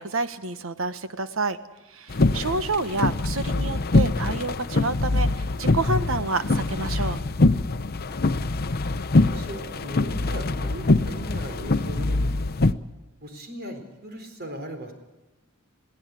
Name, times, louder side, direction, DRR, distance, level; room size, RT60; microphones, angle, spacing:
voice 1, 0.0-1.6 1.9-5.3 5.6-7.2, right 3 dB, 75° right, 11 dB, 1.3 m, -28 dB
sound 1, 2.1-12.7, left 2 dB, 50° left, 0.8 m, -23 dB
voice 2, 8.1-8.4 9.3-12.6 13.2-14.9, equal, 50° right, 5 dB, 4.2 m, -38 dB
21.5 x 16.5 x 8.4 m, 1.1 s
head